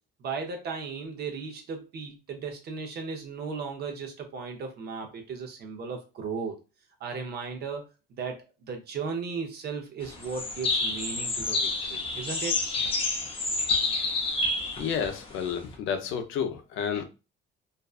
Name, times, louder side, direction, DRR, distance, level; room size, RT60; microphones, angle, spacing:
voice 1, 0.2-6.6 7.0-7.8 8.1-12.8, right 5 dB, 55° right, 0.6 m, -36 dB
sound 1, 10.0-15.7, left 3 dB, 25° left, 0.5 m, -29 dB
voice 2, 14.8-17.0, left 7 dB, 80° left, 0.5 m, -30 dB
2.5 x 2.2 x 2.3 m
cardioid pair, 145°, 20 cm